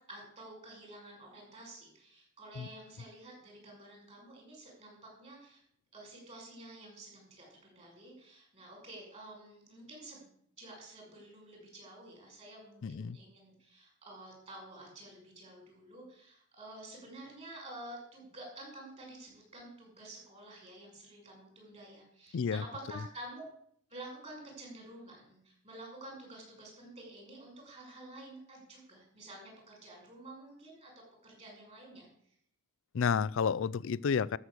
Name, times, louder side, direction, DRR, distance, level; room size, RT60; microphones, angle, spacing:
voice 1, 0.1-5.6 5.9-10.3 10.6-23.5 23.9-32.1, right 1 dB, 30° right, -1 dB, 6.3 m, -50 dB
voice 2, 12.8-13.2 22.3-22.6 32.9-34.4, left 6 dB, 65° left, 20 dB, 0.4 m, -30 dB
13.0 x 6.4 x 8.0 m, 0.67 s
head